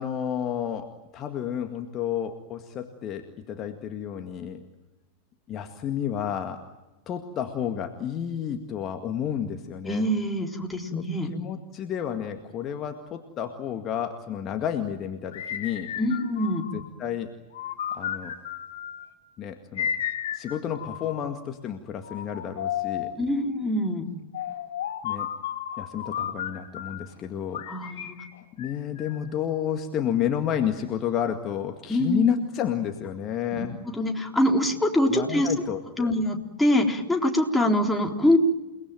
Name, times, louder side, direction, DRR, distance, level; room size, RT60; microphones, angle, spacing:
voice 1, 0.0-4.6 5.5-6.6 7.1-10.1 10.9-15.9 16.7-17.3 17.9-18.3 19.4-19.9 20.3-23.1 25.0-25.3 25.8-27.6 28.6-33.8 35.1-36.1, left 9 dB, 30° left, 5 dB, 2.0 m, -31 dB
voice 2, 9.9-11.3 16.0-16.7 23.2-24.1 27.7-28.2 31.9-32.4 33.5-35.5 36.0-38.4, left 1 dB, 5° left, 1 dB, 3.9 m, -24 dB
sound 1, 15.3-16.9 17.5-19.1 19.8-21.4 22.0-23.2 24.3-27.1 27.5-29.3, left 9 dB, 60° left, 3.9 m, -33 dB
29.5 x 20.0 x 9.2 m, 1.1 s
figure-of-eight pair, 90°, 0 cm